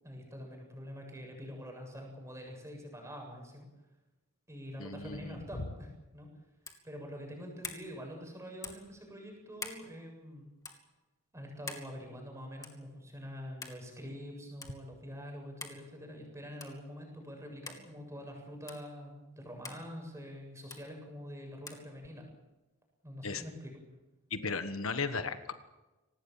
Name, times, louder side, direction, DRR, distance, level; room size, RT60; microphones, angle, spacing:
voice 1, 0.0-3.7 4.5-6.3 6.8-10.5 11.3-22.2 23.0-23.8, equal, 15° right, 2 dB, 7.6 m, -45 dB
voice 2, 4.8-5.6 23.2-23.4 24.3-25.5, left 4 dB, 70° left, 9 dB, 1.4 m, -36 dB
sound 1, 6.6-6.9 7.6-7.9 8.6-8.9 9.6-9.8 10.6-10.8 11.7-11.9 12.6-12.8 13.6-13.8 14.6-14.7 15.6-15.8 16.6-16.8 17.6-17.8 18.7-18.8 19.6-19.8 20.7-20.8 21.7-21.8, left 4 dB, 15° left, 2.6 m, -44 dB
25.5 x 19.0 x 7.4 m, 1.1 s
head